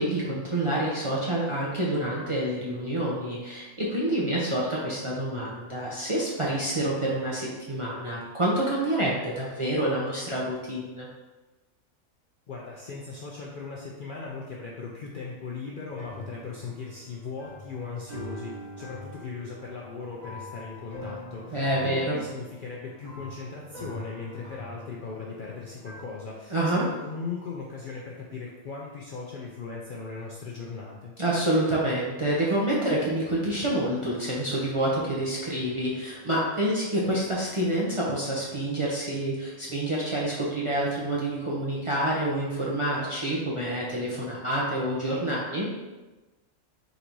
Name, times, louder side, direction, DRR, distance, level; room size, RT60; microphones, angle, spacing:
voice 1, 0.0-11.1 21.5-22.2 26.5-26.8 31.2-45.7, right 1 dB, 35° right, -6 dB, 0.5 m, -27 dB
voice 2, 12.5-31.1, left 4 dB, 60° left, -3 dB, 0.5 m, -38 dB
sound 1, 15.9-26.0, left 1 dB, 85° right, 1.7 m, -44 dB
4.0 x 2.7 x 4.4 m, 1.2 s
omnidirectional pair, 1.4 m